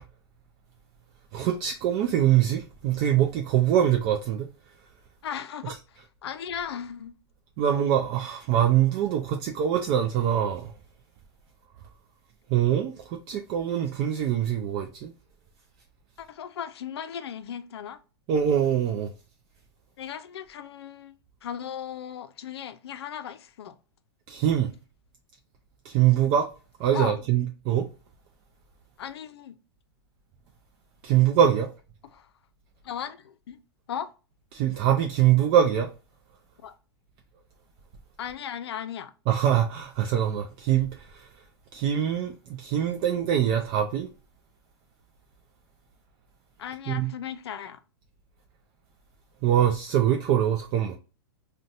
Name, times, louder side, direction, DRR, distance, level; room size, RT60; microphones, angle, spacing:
voice 1, 1.3-4.5 5.6-5.8 7.6-10.7 12.5-15.1 18.3-19.1 24.3-24.7 25.8-26.5 26.8-27.9 31.0-31.7 34.5-35.9 39.3-41.4 41.7-44.1 46.9-47.1 49.4-51.0, right 10 dB, 35° right, 0.3 m, -24 dB
voice 2, 5.2-5.8 6.2-7.2 16.2-18.0 20.0-21.1 21.4-23.8 26.9-27.2 29.0-29.6 32.1-32.3 32.8-33.6 33.9-34.1 36.6-36.8 38.2-39.1 46.6-47.8, left 8 dB, 75° left, 0.4 m, -36 dB
3.8 x 2.2 x 2.5 m
hypercardioid pair, 125°, 14 cm